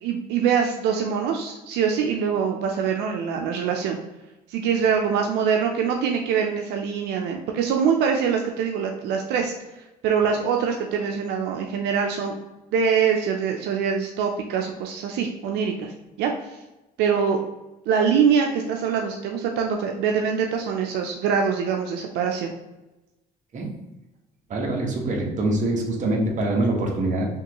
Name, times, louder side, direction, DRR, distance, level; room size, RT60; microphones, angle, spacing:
voice 1, 0.0-4.0 4.5-9.5 10.0-12.4 12.7-16.6 17.0-17.4 17.9-22.5, right 6 dB, 85° right, 2 dB, 0.5 m, -24 dB
voice 2, 24.5-27.3, right 2 dB, 45° right, 0 dB, 1.3 m, -24 dB
5.9 x 3.0 x 2.9 m, 1.0 s
cardioid pair, 110°, 17 cm